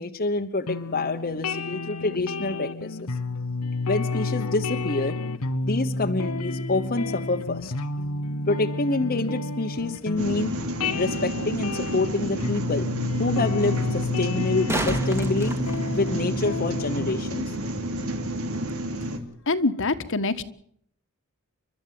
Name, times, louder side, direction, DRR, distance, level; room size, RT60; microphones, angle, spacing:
voice 1, 0.0-3.0 3.9-5.2 5.6-7.7 8.5-10.5 10.8-12.9 13.2-15.6 15.9-17.6, left 2 dB, 40° left, 4 dB, 1.1 m, -27 dB
sound 1, 0.7-17.1, left 3 dB, 85° left, 1.2 m, -30 dB
sound 2, 10.2-19.2, right 1 dB, 70° right, 2.8 m, -30 dB
sound 3, 11.5-11.6 14.3-16.5 19.3-19.4, right 1 dB, 10° right, 2.1 m, -31 dB
voice 2, 19.5-20.4, left 3 dB, 60° left, 10 dB, 1.5 m, -24 dB
30.0 x 13.0 x 7.7 m, 0.67 s
head